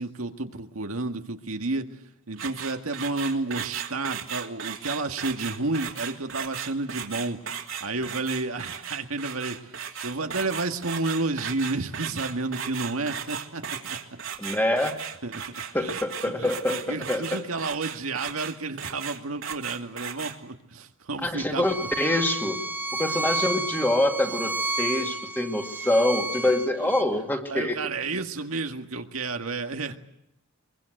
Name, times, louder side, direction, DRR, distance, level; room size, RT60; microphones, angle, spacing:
voice 1, 0.0-14.0 15.2-16.0 16.4-21.9 27.5-30.0, right 3 dB, 80° right, 5 dB, 1.9 m, -31 dB
sound 1, 2.3-20.4, right 8 dB, 60° right, 2.9 m, -36 dB
voice 2, 14.4-15.0 15.7-17.4 21.2-22.6 22.9-27.8, left 1 dB, 10° left, 4 dB, 2.4 m, -25 dB
Bowed string instrument, 21.6-27.0, right 2 dB, 10° right, 1.6 m, -31 dB
23.5 x 23.0 x 7.9 m, 0.83 s
head